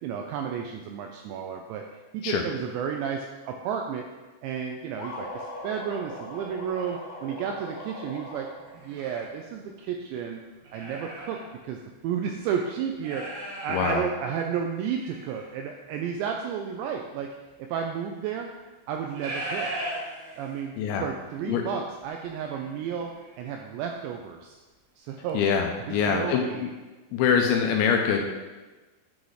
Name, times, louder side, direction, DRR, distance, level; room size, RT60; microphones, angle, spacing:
voice 1, 0.0-4.1 4.4-8.5 8.8-10.4 10.7-17.3 17.7-18.5 18.9-19.7 20.4-20.8 21.0-23.1 23.4-24.6 25.0-25.4 25.8-26.7, right 7 dB, 85° right, 2 dB, 2.5 m, -32 dB
sound 1, 5.0-8.9, left 1 dB, 55° left, 2.5 m, -40 dB
sound 2, 6.0-6.1 6.6-7.0 8.6-9.3 9.9-10.0 10.6-11.5 11.8-11.9 12.9-13.9 14.7-15.5 17.1-17.2 18.9-20.8 21.1-21.3 21.6-23.6 24.0-24.1, right 1 dB, 65° right, 2.8 m, -38 dB
voice 2, 13.7-14.0 20.8-21.0 21.5-21.6 25.3-26.5 27.1-28.2, left 7 dB, 80° left, 2 dB, 2.7 m, -24 dB
9.4 x 4.0 x 4.8 m, 1.2 s
omnidirectional pair, 5.6 m